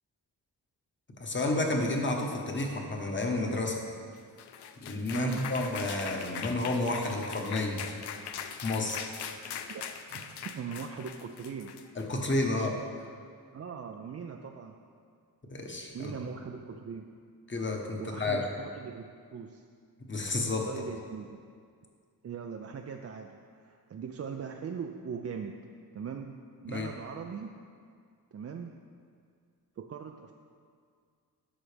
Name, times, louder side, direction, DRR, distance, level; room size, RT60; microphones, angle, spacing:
voice 1, 1.2-3.9 4.8-8.0 8.6-9.0 12.0-12.8 15.5-16.1 17.5-18.5 20.1-20.7 26.7-26.9, left 2 dB, 30° left, 1 dB, 1.1 m, -31 dB
sound 1, 4.2-12.4, left 7 dB, 85° left, 0.5 m, -41 dB
voice 2, 5.1-5.5 9.7-11.8 13.5-14.8 15.9-17.1 18.0-19.6 20.7-21.3 22.2-23.4 23.6-25.7 25.9-27.6 28.3-28.7 29.8-30.3, right 6 dB, 40° right, 3 dB, 0.4 m, -40 dB
11.0 x 6.1 x 3.4 m, 2.1 s
wide cardioid pair, 90°, 39 cm